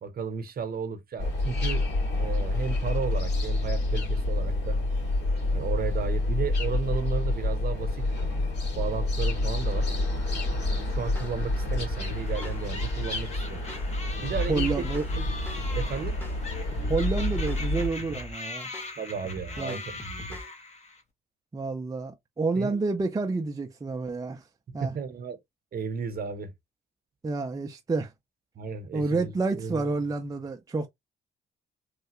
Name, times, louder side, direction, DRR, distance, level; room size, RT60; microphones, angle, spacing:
voice 1, 0.0-1.8 2.2-4.8 5.5-8.1 8.7-9.9 10.7-13.6 14.2-15.3 15.7-16.2 19.0-20.4 22.5-22.7 24.8-25.4 25.7-26.5 28.6-29.9, right 5 dB, 50° right, 0.9 m, -34 dB
sound 1, 1.2-17.9, left 2 dB, 60° left, 2.1 m, -28 dB
sound 2, 11.2-11.3 11.7-13.3 13.7-13.9 14.2-15.8 16.2-16.4 16.7-18.3 18.7-18.9 19.2-20.5, left 1 dB, 10° left, 1.0 m, -42 dB
sound 3, 12.0-21.0, left 3 dB, 35° left, 1.0 m, -41 dB
voice 2, 14.5-15.1 16.9-18.7 19.6-19.8 21.5-24.4 24.7-24.9 27.2-28.1 28.9-30.9, right 3 dB, 20° right, 0.5 m, -29 dB
3.2 x 2.3 x 2.9 m
cardioid pair, 90°, 20 cm